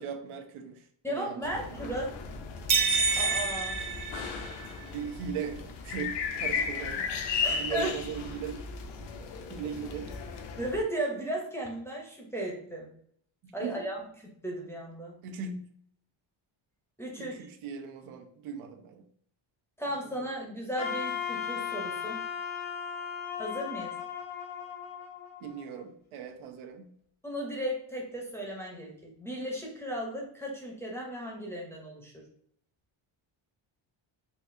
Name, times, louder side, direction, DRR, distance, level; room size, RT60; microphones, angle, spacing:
voice 1, 0.0-1.9 4.8-7.0 7.5-8.6 9.5-10.1 13.4-13.9 15.2-15.7 17.2-19.0 20.0-20.1 25.4-26.9, right 7 dB, 90° right, 6 dB, 0.6 m, -39 dB
voice 2, 1.0-2.1 3.2-3.8 6.6-6.7 7.4-8.0 10.6-12.9 13.5-14.0 14.4-15.2 17.0-17.3 19.8-22.2 23.4-24.0 27.2-32.1, right 1 dB, 5° left, -2 dB, 0.5 m, -35 dB
sound 1, 1.4-10.8, left 5 dB, 60° left, 0.5 m, -36 dB
sound 2, 2.7-4.8, right 4 dB, 40° right, 0.6 m, -28 dB
Wind instrument woodwind instrument, 20.8-25.8, left 7 dB, 90° left, 1.3 m, -36 dB
4.0 x 2.4 x 2.5 m, 0.66 s
cardioid pair, 155°, 49 cm